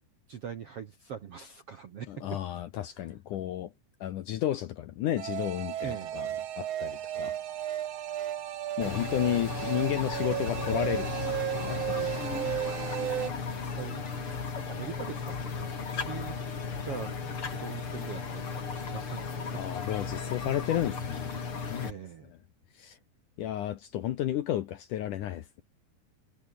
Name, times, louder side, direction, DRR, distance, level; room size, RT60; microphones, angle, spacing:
voice 1, 0.3-2.4 5.8-6.3 13.5-14.4 14.7-16.4 16.8-17.1 17.5-20.0 21.8-22.3, right 8 dB, 65° right, 1.5 m, -42 dB
voice 2, 2.1-3.7 4.0-6.3 6.6-7.3 7.7-7.8 8.8-11.1 11.5-12.0 12.3-12.6 19.5-21.4 21.7-21.9 22.8-23.0 23.4-25.6, left 12 dB, 70° left, 2.1 m, -32 dB
sound 1, 5.2-13.3, right 11 dB, 90° right, 1.4 m, -34 dB
sound 2, 8.8-21.9, left 5 dB, 35° left, 3.6 m, -35 dB
omnidirectional pair, 4.7 m